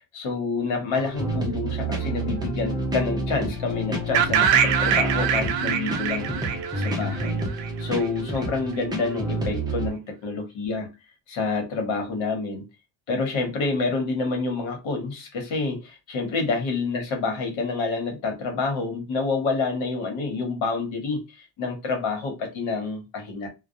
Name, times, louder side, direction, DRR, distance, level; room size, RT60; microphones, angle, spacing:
voice 1, 0.0-7.4 7.8-10.9 11.3-12.6 13.1-23.5, left 4 dB, 80° left, 1.2 m, -28 dB
sound 1, 0.9-9.9, right 1 dB, 10° right, 0.5 m, -29 dB
sound 2, 4.1-8.0, right 8 dB, 70° right, 0.5 m, -24 dB
2.3 x 2.2 x 2.6 m
cardioid pair, 165°, 46 cm